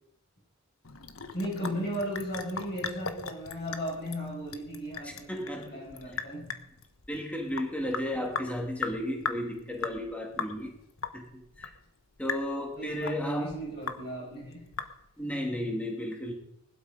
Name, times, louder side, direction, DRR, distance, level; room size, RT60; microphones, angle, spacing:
Sink (filling or washing) / Drip, 0.8-15.3, left 5 dB, 80° left, 1.4 m, -39 dB
voice 1, 1.3-6.5 8.1-8.2 12.8-14.6, equal, 50° left, -3 dB, 6.8 m, -36 dB
voice 2, 5.0-6.2 7.1-10.8 11.1-11.7 12.2-13.6 15.2-16.3, left 1 dB, 5° left, 1 dB, 2.9 m, -34 dB
20.0 x 12.0 x 5.3 m, 0.81 s
head